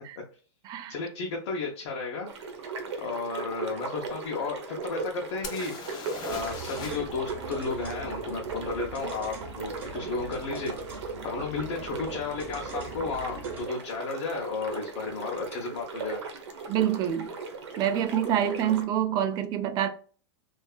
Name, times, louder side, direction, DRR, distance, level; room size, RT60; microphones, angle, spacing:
voice 1, 0.9-2.3 3.0-5.7 6.2-10.7 11.2-16.2, left 4 dB, 65° left, 0.7 m, -33 dB
sound 1, 2.2-18.8, right 4 dB, 75° right, 0.8 m, -38 dB
sound 2, 5.4-7.1 7.4-7.5 10.9-11.0 11.7-11.8 12.1-12.7 14.7-14.8 15.1-15.2, left 5 dB, 30° left, 0.6 m, -41 dB
sound 3, 6.3-13.7, right 3 dB, 10° right, 0.8 m, -43 dB
voice 2, 16.7-17.3 17.8-19.9, right 10 dB, 30° right, 0.4 m, -26 dB
2.6 x 2.4 x 2.3 m
hypercardioid pair, 135°, 15 cm